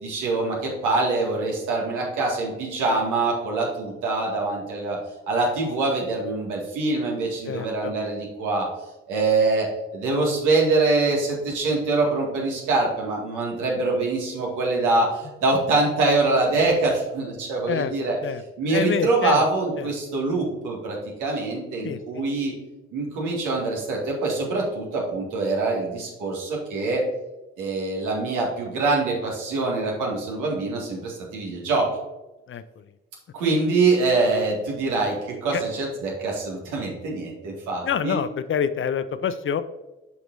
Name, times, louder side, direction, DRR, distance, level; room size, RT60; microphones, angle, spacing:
voice 1, 0.0-5.0 5.3-8.7 9.1-18.2 18.6-22.5 22.9-27.1 27.6-31.9 33.3-38.2, right 3 dB, 75° right, -2 dB, 2.0 m, -24 dB
voice 2, 7.5-7.9 17.7-17.9 18.2-18.4 18.7-19.4 19.8-19.9 21.8-22.3 32.5-32.6 35.5-35.6 37.8-39.6, left 7 dB, 40° left, 13 dB, 0.5 m, -27 dB
8.2 x 6.0 x 2.6 m, 1.1 s
hypercardioid pair, 40°, 31 cm